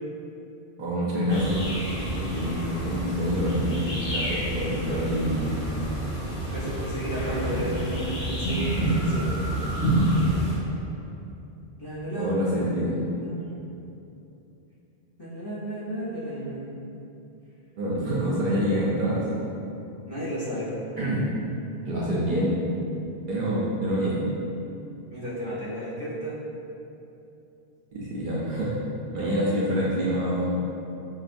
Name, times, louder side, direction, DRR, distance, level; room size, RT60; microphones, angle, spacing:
voice 1, 0.8-1.7 2.1-3.9 4.1-5.4 12.2-13.0 17.8-19.3 21.0-21.3 21.9-22.6 23.3-24.2 27.9-28.8 29.1-30.5, equal, 55° right, -7 dB, 0.7 m, -26 dB
sound 1, 1.3-10.5, right 1 dB, 65° left, 1.6 m, -28 dB
voice 2, 6.5-9.3 11.8-12.3 13.3-13.7 15.2-16.8 20.1-20.7 25.1-26.4 29.2-29.3, equal, 25° left, -12 dB, 0.7 m, -33 dB
5.5 x 2.2 x 2.5 m, 2.8 s
omnidirectional pair, 1.1 m